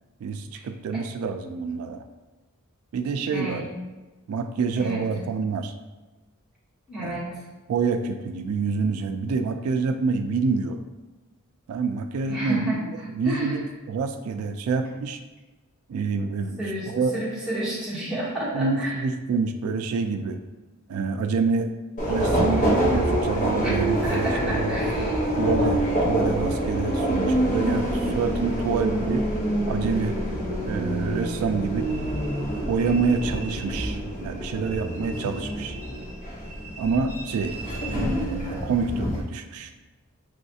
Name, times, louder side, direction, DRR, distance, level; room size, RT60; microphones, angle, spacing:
voice 1, 0.2-2.0 2.9-3.6 4.3-5.7 7.0-7.2 7.7-10.8 11.7-15.2 15.9-17.1 18.5-20.4 20.9-21.7 22.1-24.8 25.4-29.2 29.7-30.2 30.6-31.9 32.7-35.8 36.8-37.6 37.9-39.7, right 4 dB, 80° right, 8 dB, 0.3 m, -27 dB
voice 2, 3.3-3.7 4.8-5.0 6.9-7.4 12.3-12.8 13.2-13.6 16.6-19.0 23.6-25.3, right 1 dB, 5° right, -9 dB, 1.3 m, -31 dB
Subway metro underground, 22.0-39.2, right 1 dB, 35° left, 0.8 m, -26 dB
5.4 x 3.2 x 2.7 m, 1.2 s
head